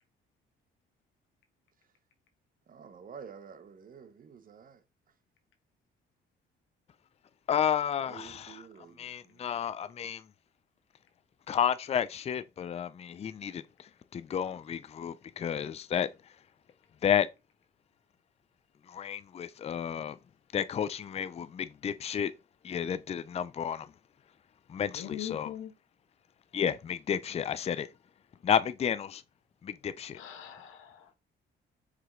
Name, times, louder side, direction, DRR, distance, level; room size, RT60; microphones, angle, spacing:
voice 1, 2.7-4.8 8.0-9.5, right 6 dB, 45° right, 0.8 m, -50 dB
voice 2, 7.5-8.6 9.0-10.2 11.5-16.1 17.0-17.3 18.9-20.2 20.5-22.3 22.6-23.9 24.7-25.5 26.5-27.9 28.4-29.2 29.6-30.2, left 8 dB, 30° left, 0.4 m, -31 dB
voice 3, 24.9-25.7 30.1-31.2, left 10 dB, 85° left, 1.2 m, -42 dB
4.9 x 3.4 x 3.1 m
cardioid pair, 90°, 20 cm